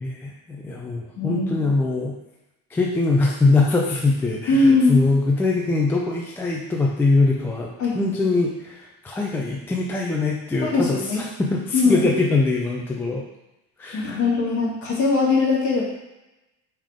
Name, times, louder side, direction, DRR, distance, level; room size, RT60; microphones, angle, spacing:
voice 1, 0.0-2.1 2.7-7.7 7.9-13.2 13.8-14.2, left 3 dB, 5° left, -2 dB, 0.3 m, -22 dB
voice 2, 1.2-1.7 4.5-5.0 7.8-8.3 10.6-11.2 11.7-12.1 13.9-15.8, left 3 dB, 45° left, -5 dB, 2.1 m, -21 dB
5.5 x 3.5 x 5.0 m, 0.96 s
cardioid pair, 170°, 32 cm